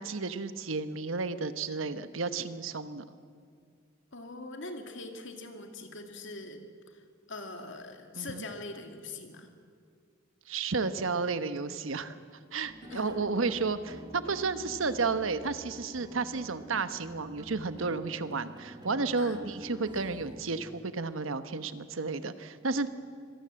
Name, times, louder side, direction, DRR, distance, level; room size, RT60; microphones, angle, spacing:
voice 1, 0.0-3.0 8.1-8.5 10.5-12.2 12.5-22.9, right 4 dB, 80° right, 11 dB, 1.1 m, -32 dB
voice 2, 4.1-7.0 7.3-9.5 12.9-13.2 19.2-19.4, left 2 dB, 65° left, 5 dB, 2.4 m, -42 dB
sound 1, 12.6-20.8, right 1 dB, 20° right, 1.3 m, -48 dB
25.0 x 18.0 x 7.6 m, 2.1 s
head